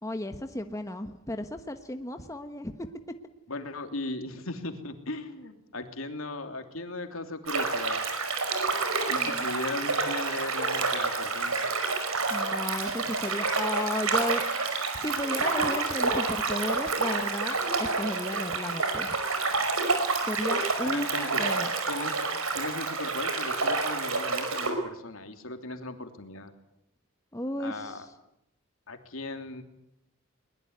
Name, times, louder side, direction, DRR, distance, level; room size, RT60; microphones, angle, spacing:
voice 1, 0.0-2.9 9.1-9.4 12.3-14.4 14.9-19.2 20.2-21.7 27.3-28.0, left 1 dB, 15° left, 7 dB, 1.1 m, -34 dB
voice 2, 3.5-8.0 9.1-11.7 13.0-13.1 20.8-21.4 21.9-22.2 22.5-26.5 27.6-28.1 28.9-29.6, left 2 dB, 70° left, 6 dB, 3.0 m, -37 dB
sound 1, 7.5-24.7, right 4 dB, 80° right, 5.2 m, -28 dB
22.0 x 21.0 x 9.5 m, 0.79 s
head